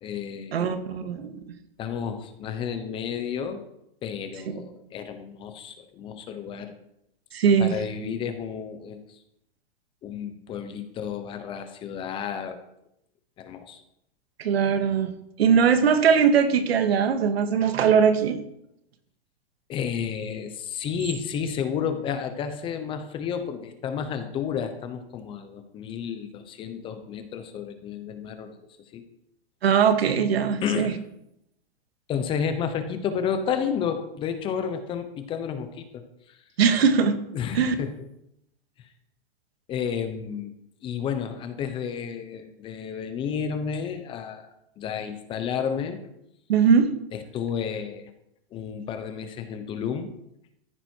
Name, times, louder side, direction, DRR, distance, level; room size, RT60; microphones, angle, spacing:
voice 1, 0.0-0.6 1.8-3.6 4.0-6.7 7.6-9.2 10.0-12.6 13.4-13.8 19.7-28.6 28.9-29.0 30.6-31.0 32.1-35.9 36.3-36.4 37.3-37.9 39.7-40.5 40.8-44.5 44.8-46.0 47.1-48.1 48.5-50.1, left 7 dB, 15° left, 8 dB, 0.9 m, -31 dB
voice 2, 0.5-1.4 4.5-4.6 7.3-7.7 14.4-15.1 15.4-18.4 29.6-30.9 36.6-37.2 37.5-37.8 46.5-46.9, right 7 dB, 80° right, 8 dB, 2.0 m, -20 dB
14.5 x 9.9 x 4.6 m, 0.79 s
hypercardioid pair, 160°, 30 cm